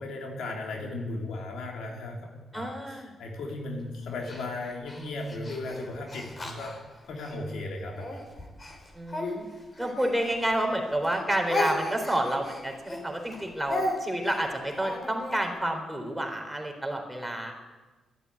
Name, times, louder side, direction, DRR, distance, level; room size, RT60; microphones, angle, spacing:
voice 1, 0.0-6.8 7.1-8.2, left 2 dB, 80° left, 1 dB, 3.2 m, -36 dB
voice 2, 2.5-3.1 8.9-9.5 9.8-17.5, right 1 dB, 5° right, 2 dB, 3.9 m, -29 dB
Speech, 4.2-7.4 7.9-10.8 11.0-15.4, left 1 dB, 35° left, 4.0 m, -35 dB
12.5 x 12.0 x 9.7 m, 1.3 s
cardioid pair, 65°, 0 cm